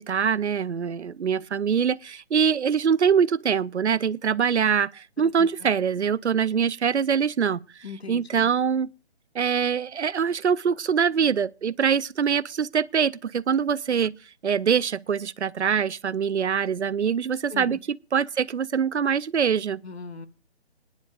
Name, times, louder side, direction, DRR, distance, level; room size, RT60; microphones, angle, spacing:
voice 1, 0.0-7.6 8.1-8.9 9.3-14.2 14.4-19.8, right 7 dB, 90° right, 0.6 m, -24 dB
voice 2, 5.2-5.7 7.8-8.5 17.5-17.8 19.8-20.3, left 5 dB, 70° left, 1.5 m, -39 dB
25.5 x 10.5 x 2.4 m
figure-of-eight pair, 145°, 33 cm